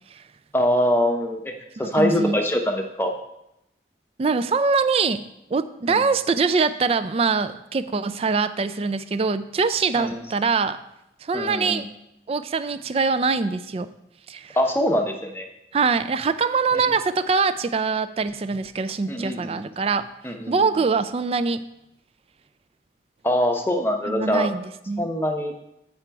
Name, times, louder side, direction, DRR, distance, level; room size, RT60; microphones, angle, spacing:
voice 1, 0.5-1.5 1.8-3.1 5.9-6.0 10.0-10.2 11.3-11.8 14.6-15.5 16.7-16.9 19.1-19.7 20.2-20.6 23.2-24.5 25.0-25.5, equal, 15° left, 4 dB, 0.7 m, -23 dB
voice 2, 1.8-2.4 4.2-5.2 5.5-10.8 11.2-11.9 12.3-13.9 14.3-14.6 15.7-20.1 20.5-21.6 24.1-25.1, right 4 dB, 35° right, 13 dB, 0.3 m, -23 dB
8.8 x 4.9 x 4.6 m, 0.84 s
head